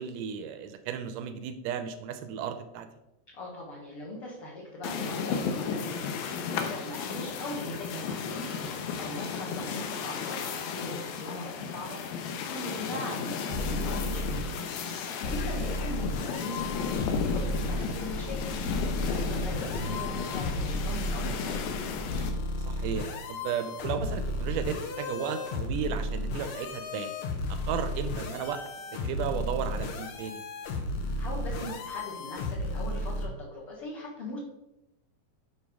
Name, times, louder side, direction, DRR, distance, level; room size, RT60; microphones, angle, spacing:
voice 1, 0.0-2.9 12.9-13.0 15.6-15.7 22.7-27.1 27.5-28.6 28.9-30.4, right 8 dB, 80° right, 9 dB, 2.0 m, -34 dB
voice 2, 3.3-6.0 6.3-12.0 12.5-14.5 15.2-18.5 19.1-21.6 31.2-34.4, left 1 dB, 50° left, -4 dB, 2.0 m, -40 dB
sound 1, 4.8-22.3, left 6 dB, 90° left, 2.6 m, -34 dB
sound 2, 13.5-14.4 15.2-17.8 18.7-21.3 22.1-33.3, left 1 dB, 70° left, 1.7 m, -33 dB
sound 3, 16.5-22.2, equal, 35° left, 1.3 m, -39 dB
11.0 x 4.8 x 3.5 m, 0.89 s
omnidirectional pair, 4.1 m